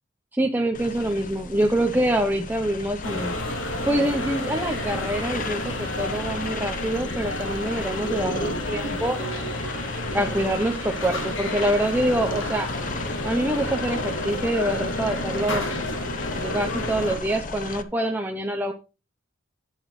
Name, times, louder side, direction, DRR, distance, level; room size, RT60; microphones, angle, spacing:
voice 1, 0.3-3.4 3.9-9.2 10.1-12.7 13.2-15.7 16.4-18.7, right 1 dB, 10° right, 3 dB, 0.7 m, -25 dB
sound 1, 0.7-17.8, left 3 dB, 40° left, 0.8 m, -35 dB
sound 2, 3.0-17.2, left 1 dB, 70° left, 2.7 m, -30 dB
11.0 x 9.0 x 3.2 m, 0.31 s
head